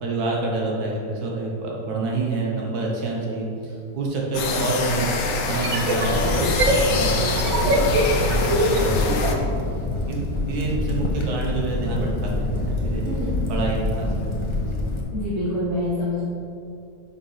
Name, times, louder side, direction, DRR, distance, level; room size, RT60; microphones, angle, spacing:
voice 1, 0.0-5.1 5.5-9.3 10.0-13.0 13.5-14.3 14.6-14.8, right 3 dB, 85° right, -2 dB, 1.6 m, -27 dB
sound 1, 4.0-4.1 5.4-9.4, right 1 dB, 65° right, 1.2 m, -23 dB
sound 2, 4.3-9.4, left 3 dB, 65° left, 1.1 m, -26 dB
Crackle, 6.0-15.0, left 2 dB, 25° left, 0.8 m, -26 dB
voice 2, 13.0-13.4 15.1-16.2, left 1 dB, 20° right, -12 dB, 1.8 m, -26 dB
5.9 x 5.7 x 5.6 m, 2.7 s
omnidirectional pair, 1.6 m